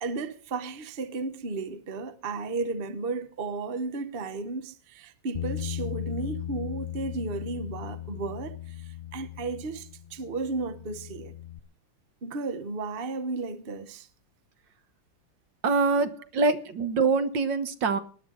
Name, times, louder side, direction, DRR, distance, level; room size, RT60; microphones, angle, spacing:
voice 1, 0.0-8.7 9.1-11.3 12.2-14.1 16.2-16.3, right 3 dB, 35° right, 1.1 m, -34 dB
Bass guitar, 5.3-11.6, left 11 dB, 75° left, 0.4 m, -37 dB
voice 2, 15.6-18.0, right 4 dB, 70° right, 1.9 m, -24 dB
19.5 x 12.0 x 3.9 m
omnidirectional pair, 2.1 m